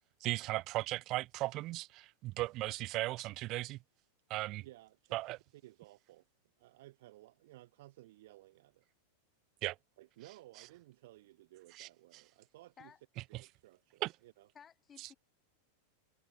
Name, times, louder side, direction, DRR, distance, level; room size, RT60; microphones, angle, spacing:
voice 1, 0.2-3.8 4.3-4.6 5.1-5.4 9.6-9.7 11.8-11.9 13.3-13.4 14.0-14.1, right 18 dB, 40° right, 1.0 m, -36 dB
voice 2, 4.6-6.3 6.6-8.8 10.0-12.9 13.3-14.5, right 17 dB, 55° right, 7.6 m, -57 dB
voice 3, 14.5-15.2, left 7 dB, 20° left, 3.7 m, -57 dB
figure-of-eight pair, 90°, 0 cm